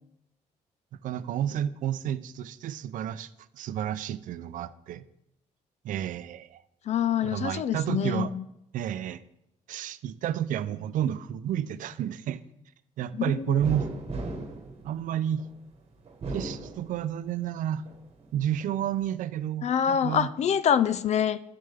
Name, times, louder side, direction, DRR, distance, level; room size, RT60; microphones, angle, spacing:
voice 1, 1.0-5.0 5.8-6.6 7.2-8.3 8.7-9.2 9.7-12.4 13.0-13.9 14.8-15.4 16.3-17.8 18.3-20.3, right 10 dB, 70° right, 0.5 m, -31 dB
voice 2, 6.9-8.4 13.1-13.5 19.6-21.4, left 8 dB, 55° left, 0.5 m, -25 dB
sound 1, 13.6-15.5 16.1-17.4 17.8-18.7, right 2 dB, 45° right, 1.3 m, -37 dB
9.9 x 6.4 x 3.5 m
cardioid pair, 85°, 14 cm